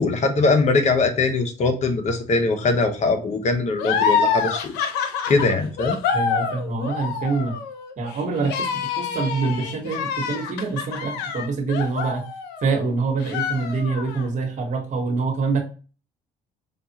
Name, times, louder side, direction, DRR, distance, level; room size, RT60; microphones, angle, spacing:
voice 1, 0.0-4.7 5.3-6.0, left 3 dB, 45° left, 6 dB, 0.9 m, -21 dB
sound 1, 3.8-12.9 13.2-14.3, left 6 dB, 90° left, 0.6 m, -26 dB
voice 2, 6.1-7.5 8.0-12.3 12.6-15.6, right 4 dB, 50° right, 3 dB, 1.2 m, -25 dB
5.1 x 2.4 x 2.8 m, 0.36 s
cardioid pair, 90°, 16 cm